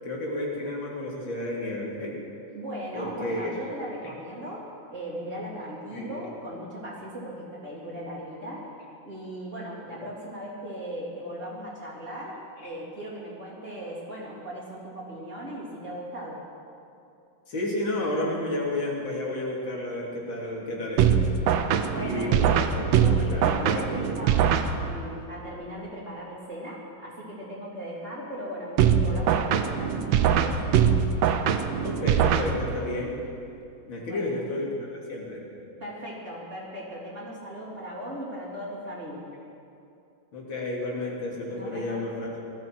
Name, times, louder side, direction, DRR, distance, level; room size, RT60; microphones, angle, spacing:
voice 1, 0.0-2.1 2.9-3.5 5.9-6.2 17.5-21.1 22.0-22.4 22.7-22.9 23.3-23.8 31.8-33.1 33.9-35.4 40.3-42.3, left 1 dB, 90° left, -4 dB, 3.5 m, -31 dB
voice 2, 2.5-4.7 4.9-8.7 9.0-16.4 21.6-22.7 23.0-30.6 34.0-34.4 35.8-39.2 41.5-42.0, equal, 40° right, -6 dB, 3.9 m, -38 dB
sound 1, 21.0-25.2 28.8-33.0, right 8 dB, 85° right, 1.5 m, -23 dB
19.0 x 14.0 x 4.6 m, 2.6 s
omnidirectional pair, 2.1 m